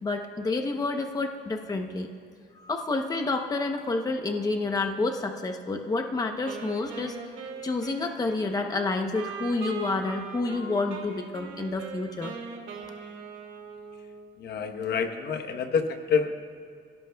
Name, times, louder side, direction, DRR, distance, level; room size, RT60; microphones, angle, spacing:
voice 1, 0.0-2.1 2.6-7.2 7.6-12.3 12.8-12.9, left 3 dB, 20° left, 4 dB, 0.8 m, -29 dB
Wind instrument woodwind instrument, 6.5-14.4, right 5 dB, 75° right, 2.0 m, -40 dB
voice 2, 14.4-16.3, left 6 dB, 60° left, 6 dB, 1.1 m, -27 dB
27.0 x 16.5 x 2.3 m, 2.3 s
cardioid pair, 150°, 19 cm